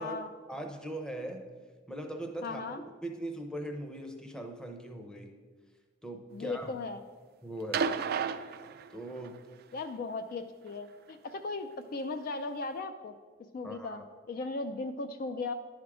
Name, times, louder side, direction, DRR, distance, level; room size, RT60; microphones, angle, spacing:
voice 1, 0.5-1.5 1.9-2.6 3.0-5.3 6.0-6.7 7.4-7.9 8.9-9.3 13.6-14.0, right 1 dB, 5° left, 4 dB, 0.6 m, -40 dB
voice 2, 2.4-2.8 6.3-7.0 9.7-13.1 13.5-15.5, left 3 dB, 50° left, 8 dB, 0.3 m, -37 dB
sound 1, 7.7-9.4 10.7-10.8, right 6 dB, 50° right, 0.3 m, -33 dB
10.5 x 3.6 x 4.8 m, 1.5 s
head